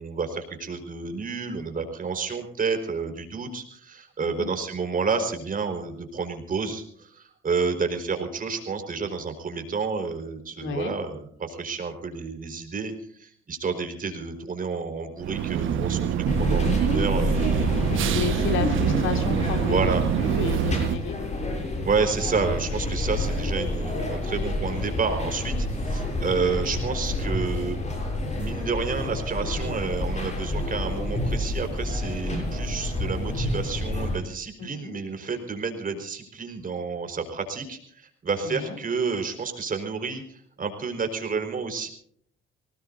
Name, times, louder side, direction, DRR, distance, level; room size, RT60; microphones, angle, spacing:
voice 1, 0.0-16.1 16.4-17.9 19.7-20.0 21.8-27.8 28.4-41.9, right 5 dB, 45° right, 5 dB, 4.6 m, -30 dB
voice 2, 4.2-4.5 10.6-10.9 17.8-21.5 34.6-35.0 38.4-38.8, left 4 dB, 80° left, 5 dB, 3.2 m, -32 dB
sound 1, 15.2-21.0, right 9 dB, 80° right, 1.3 m, -25 dB
sound 2, 16.3-34.2, left 1 dB, 35° left, 7.6 m, -28 dB
25.5 x 19.0 x 2.7 m, 0.64 s
cardioid pair, 90°, 20 cm